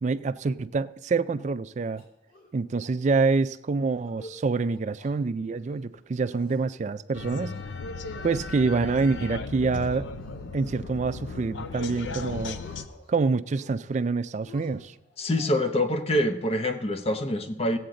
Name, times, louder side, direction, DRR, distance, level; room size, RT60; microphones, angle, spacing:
voice 1, 0.0-2.0 2.5-7.5 8.2-10.1 10.5-12.6 13.1-14.9, right 4 dB, 40° right, 13 dB, 0.3 m, -26 dB
sound 1, 2.0-2.5 2.8-2.9 3.2-3.5 3.9-4.4 4.7-5.1 5.5-6.0 6.3-7.0 7.4-7.8 8.2-8.6 9.0-10.5 10.8-11.4 11.8-12.2 12.4-13.1 13.5-14.1 14.4-15.7, left 1 dB, 50° left, 2.0 m, -51 dB
sound 2, 7.1-12.9, left 3 dB, 70° left, 0.6 m, -36 dB
voice 2, 15.2-17.8, left 1 dB, 30° left, 7 dB, 0.8 m, -25 dB
16.0 x 8.6 x 3.8 m, 0.96 s
head